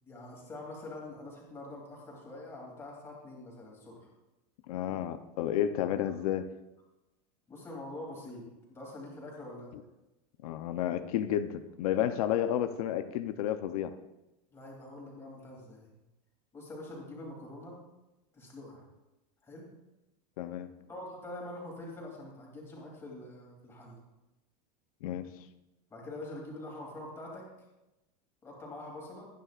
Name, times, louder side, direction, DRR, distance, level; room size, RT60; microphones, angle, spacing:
voice 1, 0.0-4.1 7.5-9.7 12.4-12.6 14.5-15.9 16.5-17.8 18.3-18.8 19.4-19.7 20.9-24.0 25.9-27.5 28.4-29.3, left 1 dB, 10° left, -3 dB, 2.9 m, -45 dB
voice 2, 4.7-6.5 10.4-13.9 20.4-20.7 25.0-25.3, left 11 dB, 60° left, 9 dB, 0.7 m, -31 dB
22.5 x 9.5 x 2.5 m, 0.97 s
supercardioid pair, 175°, 21 cm